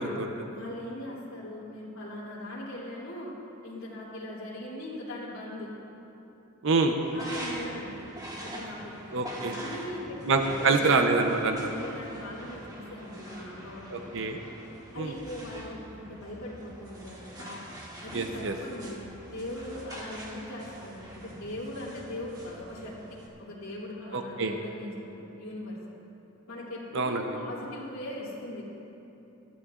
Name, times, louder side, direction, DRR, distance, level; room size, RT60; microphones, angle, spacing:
voice 1, 0.5-3.3 3.6-5.7 7.1-7.9 8.4-9.2 9.5-10.9 11.3-14.1 14.9-17.6 18.0-25.8 26.5-28.6, left 1 dB, 75° left, -8 dB, 3.0 m, -40 dB
voice 2, 6.6-7.0 9.1-9.5 10.2-11.6 13.9-14.4 15.0-15.1 18.1-18.5 24.1-24.5 26.9-27.3, right 3 dB, 65° right, 4 dB, 0.8 m, -26 dB
sound 1, 7.0-23.3, right 1 dB, 20° right, 1.5 m, -44 dB
21.5 x 12.5 x 2.5 m, 3.0 s
head